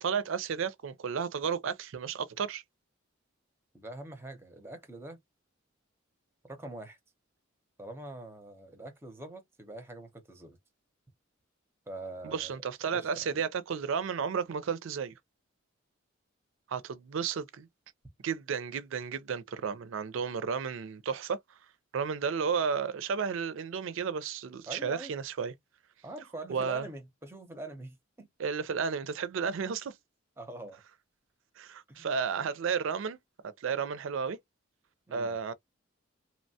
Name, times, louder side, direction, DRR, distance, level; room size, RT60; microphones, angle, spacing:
voice 1, 0.0-2.6 12.2-15.1 16.7-17.7 18.2-21.4 21.9-25.5 26.5-26.8 28.4-29.9 31.6-33.2 33.6-34.4 35.1-35.5, right 6 dB, 70° right, 0.4 m, -32 dB
voice 2, 3.7-5.2 6.4-7.0 7.8-10.6 11.9-12.5 12.9-13.3 24.7-25.1 26.0-28.3 30.4-30.8 31.9-32.1 35.1-35.4, right 2 dB, 10° right, 0.5 m, -44 dB
2.9 x 2.1 x 2.6 m
head